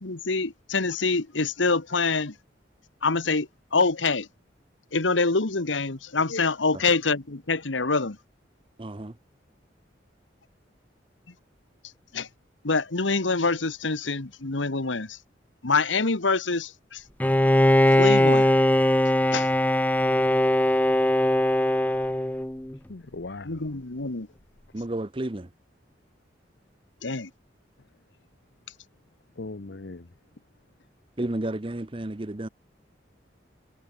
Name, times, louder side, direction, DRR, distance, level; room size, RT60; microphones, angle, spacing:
voice 1, 0.0-2.3 3.0-4.3 4.9-8.2 12.1-12.3 12.6-15.2 15.6-17.0 17.9-18.5 19.3-19.5 23.4-24.3 27.0-27.3, left 3 dB, 90° left, 1.6 m, -25 dB
voice 2, 8.8-9.2 24.7-25.5 31.2-32.5, right 1 dB, 30° right, 0.8 m, -32 dB
Bowed string instrument, 17.2-22.8, left 1 dB, 10° left, 0.6 m, -20 dB
voice 3, 22.9-23.8 29.4-30.1, left 3 dB, 65° left, 0.9 m, -39 dB
head